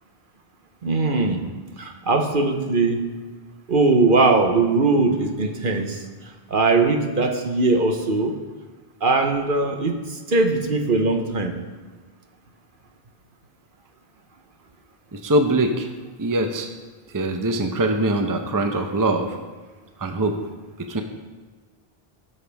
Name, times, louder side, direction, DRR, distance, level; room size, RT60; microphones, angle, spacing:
voice 1, 0.8-1.4 1.8-3.0 3.7-6.0 6.5-8.4 9.0-11.6, right 3 dB, 55° right, 4 dB, 1.1 m, -20 dB
voice 2, 15.1-15.9 16.2-16.7 17.1-19.4 20.0-20.4 20.8-21.0, right 1 dB, 20° right, 5 dB, 0.7 m, -22 dB
16.5 x 6.9 x 3.5 m, 1.3 s
omnidirectional pair, 1.1 m